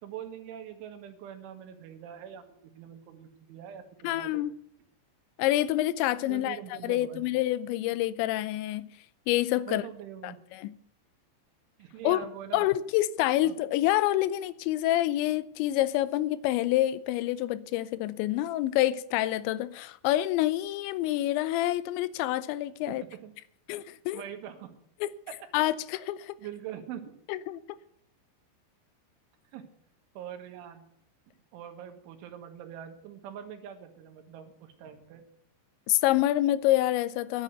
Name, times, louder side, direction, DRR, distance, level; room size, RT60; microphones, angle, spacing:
voice 1, 0.0-4.4 6.3-7.2 9.7-10.4 11.8-12.7 13.4-13.6 22.9-23.3 24.1-24.7 25.3-25.4 26.4-27.1 29.5-29.7 30.2-30.9 31.5-35.2, right 9 dB, 85° right, 3.9 m, -43 dB
voice 2, 4.0-4.5 5.4-6.6 6.8-8.9 9.3-9.8 10.2-10.7 12.0-12.2 12.5-23.0 23.7-24.2 25.0-25.1 25.5-26.4 27.3-27.6 35.9-37.4, left 15 dB, 85° left, 2.8 m, -27 dB
10.5 x 9.3 x 7.9 m
omnidirectional pair, 5.4 m